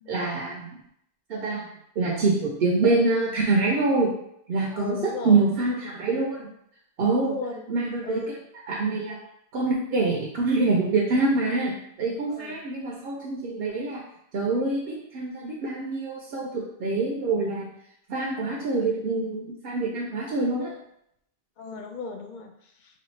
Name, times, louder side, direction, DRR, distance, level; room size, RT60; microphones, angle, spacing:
voice 1, 0.1-0.7 1.3-1.6 2.0-4.1 4.5-5.0 5.2-6.5 7.0-7.3 7.7-8.2 8.7-9.2 9.5-14.0 14.3-17.7 18.1-20.7, right 3 dB, 70° right, -2 dB, 0.8 m, -25 dB
voice 2, 4.7-5.5 7.0-7.6 8.0-8.3 12.3-12.6 21.6-23.0, left 4 dB, 60° left, 4 dB, 0.6 m, -36 dB
4.1 x 2.4 x 3.1 m, 0.75 s
omnidirectional pair, 1.0 m